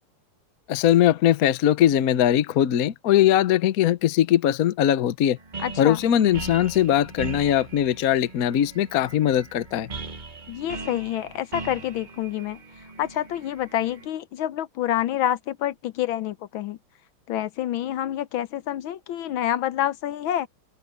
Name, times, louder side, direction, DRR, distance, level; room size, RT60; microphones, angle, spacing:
voice 1, 0.7-5.4 5.8-9.9, left 11 dB, 55° left, 1.0 m, -20 dB
sound 1, 5.4-14.1, right 3 dB, 25° right, 1.4 m, -39 dB
voice 2, 5.6-6.0 10.5-12.6 13.0-16.8 17.3-20.5, left 12 dB, 75° left, 1.5 m, -27 dB
open air
omnidirectional pair, 2.3 m